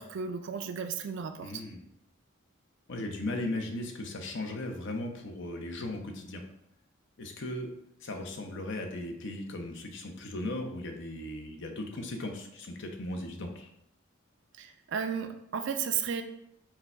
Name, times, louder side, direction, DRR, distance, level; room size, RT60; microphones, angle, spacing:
voice 1, 0.0-1.6 14.6-16.2, right 7 dB, 65° right, 6 dB, 0.4 m, -34 dB
voice 2, 1.4-1.8 2.9-6.4 7.2-7.7 8.0-13.7, left 1 dB, 65° left, 4 dB, 0.7 m, -37 dB
4.7 x 2.3 x 4.4 m, 0.77 s
head